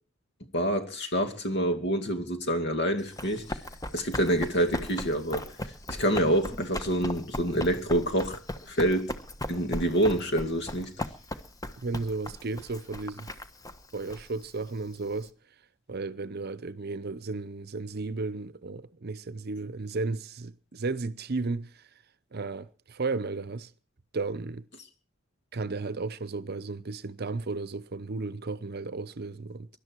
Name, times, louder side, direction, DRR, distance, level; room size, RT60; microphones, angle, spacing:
voice 1, 0.5-3.6 3.9-5.5 5.9-8.4 8.7-9.2 9.5-10.9, equal, 55° left, 2.4 m, -27 dB
Run, 3.0-15.3, left 1 dB, 15° left, 1.2 m, -38 dB
voice 2, 11.8-13.3 13.9-15.3 15.9-21.8 22.3-23.7 24.1-24.7 25.5-29.7, right 3 dB, 50° right, 0.7 m, -34 dB
24.0 x 12.0 x 4.6 m
head